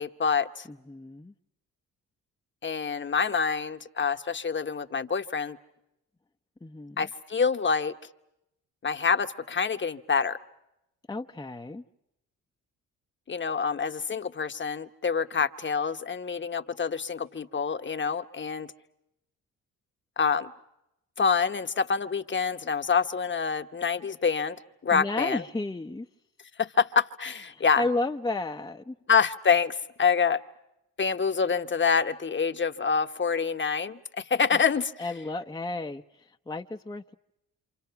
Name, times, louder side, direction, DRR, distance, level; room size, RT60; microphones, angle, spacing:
voice 1, 0.0-0.7 2.6-5.6 7.0-7.9 8.8-10.4 13.3-18.7 20.2-20.5 21.2-24.6 24.8-25.4 26.6-27.8 29.1-30.4 31.0-34.9, left 6 dB, 35° left, 1.1 m, -26 dB
voice 2, 0.7-1.3 6.6-7.1 11.1-11.8 24.9-26.1 27.5-29.0 34.5-34.6 35.0-37.1, left 2 dB, 10° left, 0.8 m, -33 dB
27.5 x 27.0 x 5.8 m
cardioid pair, 80°, 34 cm